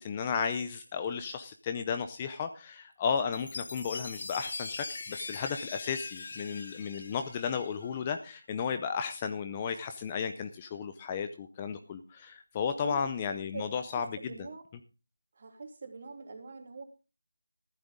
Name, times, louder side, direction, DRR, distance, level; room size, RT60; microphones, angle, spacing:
voice 1, 0.0-14.2, left 6 dB, 15° left, 8 dB, 0.5 m, -34 dB
Chime, 3.3-7.9, left 3 dB, 40° left, 1.3 m, -41 dB
voice 2, 12.8-13.2 13.5-14.6 15.3-16.8, right 4 dB, 35° right, 4 dB, 2.9 m, -44 dB
14.5 x 12.0 x 3.7 m, 0.31 s
figure-of-eight pair, 175°, 0 cm